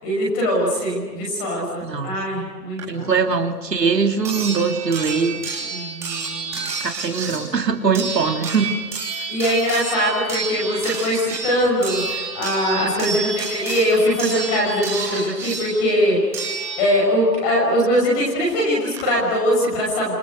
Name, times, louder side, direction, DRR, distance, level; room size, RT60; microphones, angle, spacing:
voice 1, 0.0-3.1 5.7-6.7 9.3-16.4 16.8-20.1, equal, 10° left, -2 dB, 6.1 m, -21 dB
voice 2, 1.8-2.2 2.9-5.6 6.8-8.7, right 5 dB, 85° right, 4 dB, 3.4 m, -21 dB
sound 1, 2.8-2.9 4.2-17.2 18.5-18.6 18.9-19.0, right 4 dB, 5° right, 3.9 m, -30 dB
29.0 x 27.5 x 6.6 m, 1.5 s
hypercardioid pair, 175°, 48 cm